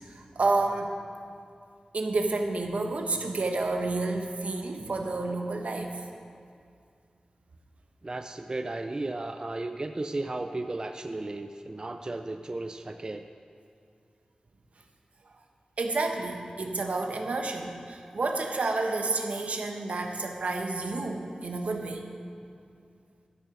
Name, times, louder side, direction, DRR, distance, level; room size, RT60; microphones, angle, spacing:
voice 1, 0.1-0.9 1.9-5.9 15.8-22.1, right 3 dB, 80° right, 3 dB, 1.0 m, -30 dB
voice 2, 8.0-13.3, right 2 dB, 35° right, 6 dB, 0.4 m, -34 dB
12.5 x 7.0 x 5.9 m, 2.3 s
wide cardioid pair, 90°, 2 cm